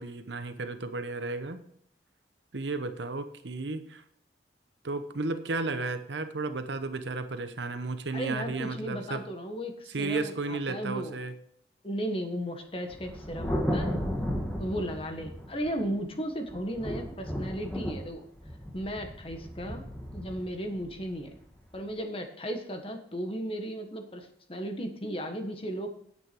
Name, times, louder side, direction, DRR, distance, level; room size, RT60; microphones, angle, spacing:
voice 1, 0.0-1.6 2.5-4.0 4.8-9.3 9.9-11.3, right 3 dB, 85° right, 9 dB, 1.0 m, -33 dB
voice 2, 8.1-11.2 11.8-14.0 14.6-18.2 18.7-19.8 20.1-21.3 21.7-26.0, equal, 30° left, 5 dB, 1.4 m, -35 dB
Thunder, 12.9-16.0 16.5-21.8, equal, 5° left, 1.4 m, -34 dB
9.8 x 8.2 x 4.5 m, 0.71 s
head